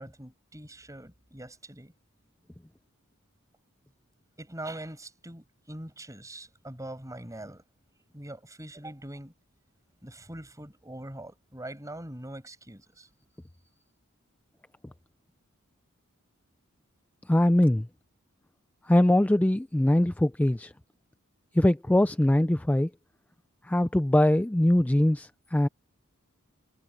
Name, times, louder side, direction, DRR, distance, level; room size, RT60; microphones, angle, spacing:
voice 1, 0.0-1.9 4.4-7.6 8.1-9.3 10.0-13.1, right 1 dB, 15° right, 6.0 m, -42 dB
voice 2, 17.3-17.9 18.9-20.7 21.5-22.9 23.7-25.7, left 1 dB, 5° left, 0.4 m, -22 dB
head